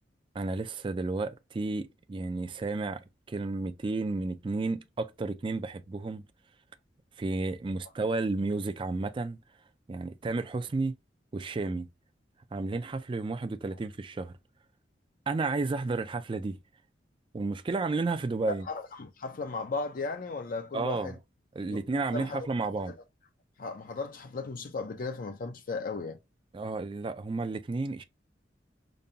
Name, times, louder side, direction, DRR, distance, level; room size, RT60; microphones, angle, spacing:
voice 1, 0.3-6.2 7.2-9.4 9.9-10.9 11.3-11.9 12.5-14.4 15.3-16.6 17.3-18.7 20.7-21.1 21.6-22.9 26.5-28.0, right 3 dB, 30° right, 0.4 m, -32 dB
voice 2, 18.5-21.2 21.7-21.8 22.1-22.5 22.8-22.9 23.6-26.2, left 3 dB, 50° left, 0.5 m, -36 dB
5.2 x 2.2 x 2.7 m
head